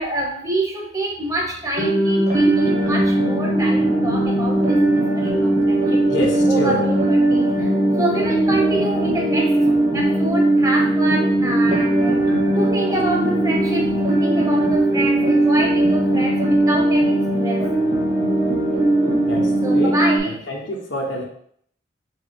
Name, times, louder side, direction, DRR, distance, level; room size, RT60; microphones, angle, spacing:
voice 1, 0.0-6.0 6.5-9.7 9.9-12.2 12.5-17.6 19.6-20.3, right 1 dB, 20° right, -1 dB, 0.8 m, -26 dB
sound 1, 1.8-20.2, right 1 dB, 35° right, 1.0 m, -19 dB
voice 2, 6.1-6.8 19.2-20.0 20.2-21.2, equal, 85° left, -1 dB, 1.0 m, -26 dB
4.7 x 2.1 x 4.6 m, 0.65 s
head